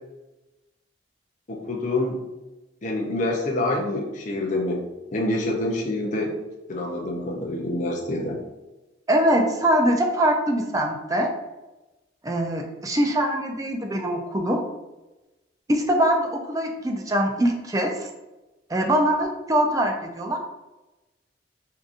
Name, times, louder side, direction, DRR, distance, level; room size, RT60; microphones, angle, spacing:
voice 1, 1.5-2.2 2.8-4.8 5.1-6.3 6.7-8.4, left 1 dB, 40° left, -1 dB, 0.5 m, -26 dB
voice 2, 9.1-11.3 12.2-14.6 15.7-18.1 18.7-20.4, right 1 dB, 20° right, 2 dB, 0.4 m, -23 dB
4.7 x 2.7 x 2.5 m, 1.1 s
head